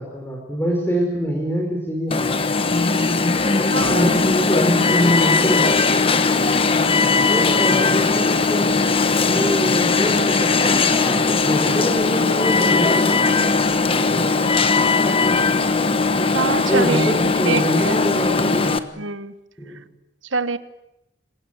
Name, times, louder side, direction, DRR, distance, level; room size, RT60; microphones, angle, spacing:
voice 1, 0.0-2.5 3.8-6.4 7.3-8.7 9.2-14.5 16.7-19.0 19.6-19.8, equal, 10° left, 0 dB, 4.5 m, -26 dB
Alarm, 2.1-18.8, left 4 dB, 30° left, 1.2 m, -19 dB
voice 2, 3.6-4.2 16.3-17.2 17.4-18.0 19.0-19.3 20.3-20.6, right 4 dB, 80° right, 13 dB, 1.4 m, -24 dB
27.5 x 23.5 x 8.9 m, 0.87 s
head